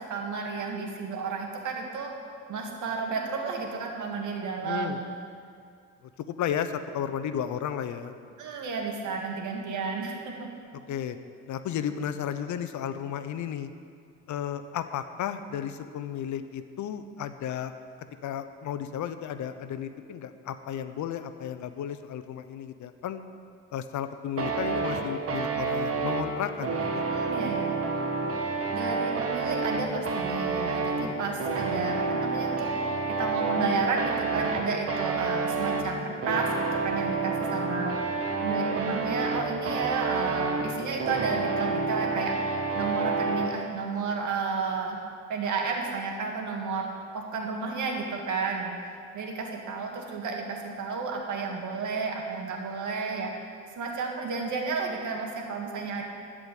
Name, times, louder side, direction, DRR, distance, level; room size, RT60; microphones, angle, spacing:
voice 1, 0.1-2.1 2.5-5.0 8.4-10.3 27.1-27.7 28.7-32.7 33.2-38.0 38.4-42.3 42.7-45.0 45.3-46.9 47.1-48.8 49.1-53.3 53.8-56.0, right 4 dB, 75° right, 1 dB, 2.0 m, -32 dB
voice 2, 4.6-5.0 6.2-8.1 10.9-11.2 11.5-13.7 14.3-17.7 18.2-23.2 23.7-27.0, left 9 dB, 75° left, 10 dB, 0.8 m, -33 dB
sound 1, 24.4-43.5, right 4 dB, 50° right, 1.6 m, -29 dB
13.5 x 5.0 x 9.1 m, 2.3 s
cardioid pair, 90°, 30 cm